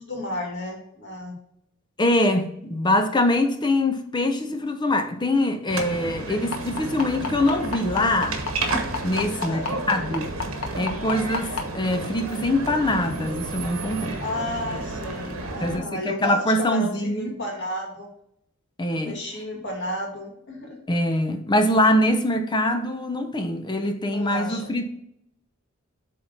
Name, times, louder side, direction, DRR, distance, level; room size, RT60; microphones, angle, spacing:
voice 1, 0.0-1.3 9.4-9.7 14.2-18.1 19.1-20.8 24.0-24.8, left 1 dB, 60° left, 2.1 m, -32 dB
voice 2, 2.0-8.4 9.0-10.3 10.7-14.2 15.6-17.4 18.8-19.2 20.9-24.9, left 1 dB, 20° left, 0.6 m, -23 dB
sound 1, 5.7-15.8, right 2 dB, 75° right, 1.2 m, -32 dB
sound 2, 6.5-11.6 12.7-12.8 13.2-13.3 13.7-13.8, left 5 dB, 80° left, 1.3 m, -28 dB
8.1 x 3.7 x 4.1 m
head